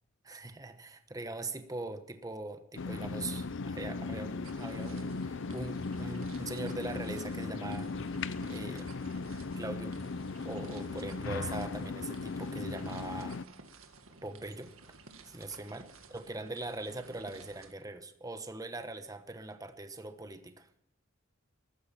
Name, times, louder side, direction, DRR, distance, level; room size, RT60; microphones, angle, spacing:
voice 1, 0.2-7.9 8.5-8.9 9.5-9.9 10.4-13.4 14.2-14.7 15.2-20.7, right 2 dB, 15° right, 9 dB, 1.1 m, -41 dB
sound 1, 2.8-13.4, left 3 dB, 65° left, 0.6 m, -37 dB
sound 2, 4.4-17.7, right 4 dB, 90° right, 1.8 m, -55 dB
15.0 x 12.0 x 5.8 m, 0.84 s
head